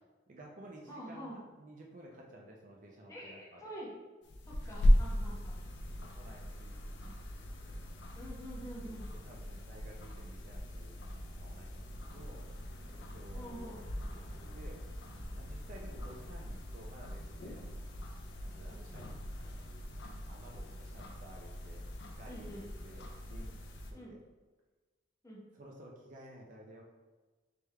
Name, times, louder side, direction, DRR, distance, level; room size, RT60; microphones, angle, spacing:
voice 1, 0.3-3.7 4.6-4.9 5.2-5.5 6.1-7.8 9.2-12.4 12.9-13.8 14.1-14.8 15.3-17.8 18.4-19.1 19.4-19.9 20.3-21.8 22.1-23.6 23.9-24.2 25.5-26.8, right 1 dB, 40° right, -1 dB, 0.4 m, -54 dB
voice 2, 0.9-1.4 3.1-4.0 4.5-5.6 8.1-9.1 13.3-13.8 17.9-18.0 18.7-19.0 22.2-22.7 23.9-24.2 25.2-25.4, equal, 15° left, -5 dB, 0.8 m, -47 dB
sound 1, 4.2-23.9, equal, 60° left, 0.5 m, -37 dB
3.4 x 3.3 x 3.3 m, 1.3 s
head